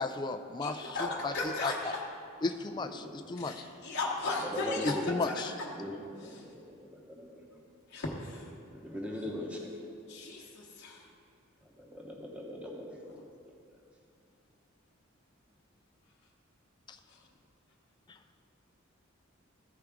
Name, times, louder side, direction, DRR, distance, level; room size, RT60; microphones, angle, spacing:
voice 1, 0.0-1.0 1.2-1.3 1.6-1.9 2.4-3.7 4.8-5.5 16.9-17.0 18.1-18.2, left 3 dB, 20° left, 6 dB, 0.3 m, -34 dB
voice 2, 0.6-2.0 3.4-5.7 6.2-6.5 7.9-8.5 10.1-11.1 17.1-17.2, left 2 dB, 55° left, -4 dB, 0.9 m, -37 dB
voice 3, 2.8-3.2 4.4-5.1 5.7-7.6 8.6-10.5 11.6-13.2, left 1 dB, 5° right, -1 dB, 0.8 m, -41 dB
13.5 x 4.8 x 3.5 m, 2.5 s
head